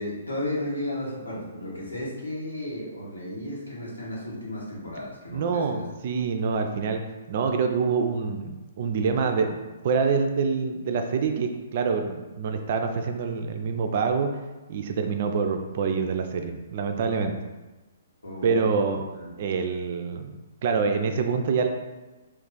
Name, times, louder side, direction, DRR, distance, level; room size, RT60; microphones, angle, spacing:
voice 1, 0.0-5.8 18.2-18.6 19.2-19.3, left 1 dB, 80° left, -6 dB, 1.1 m, -34 dB
voice 2, 5.3-7.0 7.3-9.6 9.8-14.3 14.7-17.3 18.4-19.0 19.4-20.3 20.6-21.7, right 5 dB, 45° right, 5 dB, 0.3 m, -26 dB
2.5 x 2.4 x 3.7 m, 1.2 s
figure-of-eight pair, 120°, 0 cm